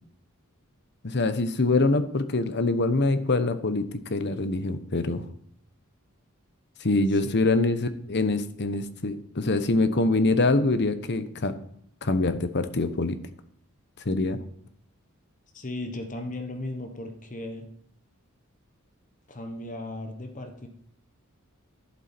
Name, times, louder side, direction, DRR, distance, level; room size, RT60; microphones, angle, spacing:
voice 1, 1.0-5.3 6.8-11.5 12.0-13.2 14.0-14.4, left 2 dB, 55° left, 11 dB, 1.0 m, -24 dB
voice 2, 15.5-17.7 19.3-20.7, left 1 dB, 35° left, 6 dB, 1.2 m, -36 dB
11.5 x 11.5 x 4.5 m, 0.66 s
head